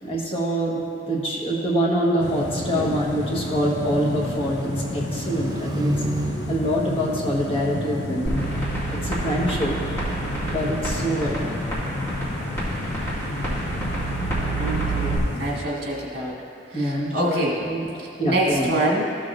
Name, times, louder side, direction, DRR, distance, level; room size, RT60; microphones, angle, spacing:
voice 1, 0.0-5.9 6.5-8.4 9.0-9.8 10.4-11.6 16.7-17.9 18.2-18.7, equal, 30° left, -4 dB, 1.3 m, -25 dB
sound 1, 2.2-15.6, left 2 dB, 65° left, 0.7 m, -31 dB
sound 2, 2.5-8.0, right 1 dB, 20° right, 0.4 m, -33 dB
sound 3, 8.3-15.2, right 2 dB, 15° left, 2.0 m, -29 dB
voice 2, 14.6-16.3 16.7-17.6 18.0-19.1, right 1 dB, 60° right, -4 dB, 1.6 m, -26 dB
14.0 x 6.4 x 2.5 m, 2.7 s
head